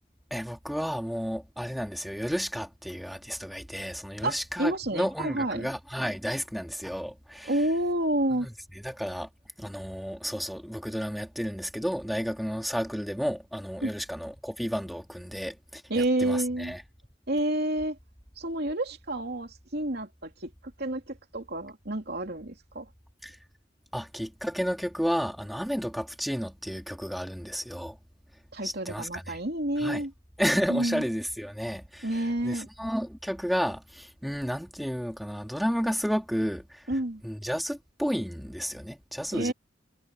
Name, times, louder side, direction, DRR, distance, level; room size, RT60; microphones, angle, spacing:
voice 1, 0.3-7.5 8.3-8.5 8.8-9.3 9.6-16.8 23.2-23.4 23.9-28.0 28.6-29.4 29.8-30.0 30.4-36.9 37.2-39.5, equal, ahead, 2.7 m, -32 dB
voice 2, 4.2-5.7 7.4-8.5 13.8-13.9 15.9-16.7 17.3-18.0 18.4-20.5 20.8-22.9 28.5-30.1 30.7-31.0 32.0-32.7 36.9-37.2 39.3-39.5, right 1 dB, 55° right, 3.1 m, -29 dB
head